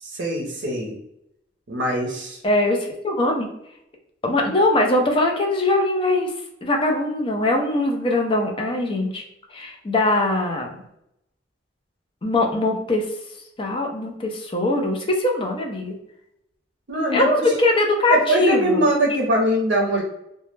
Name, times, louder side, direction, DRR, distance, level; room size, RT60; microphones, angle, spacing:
voice 1, 0.0-1.0 1.7-2.4 16.9-17.5 18.1-20.0, right 1 dB, 70° right, -1 dB, 0.5 m, -22 dB
voice 2, 2.4-3.5 4.2-6.3 6.6-9.2 9.5-10.8 12.2-13.0 13.6-15.9 17.1-18.9, left 2 dB, 30° left, 1 dB, 0.5 m, -21 dB
2.2 x 2.0 x 3.1 m, 0.81 s
head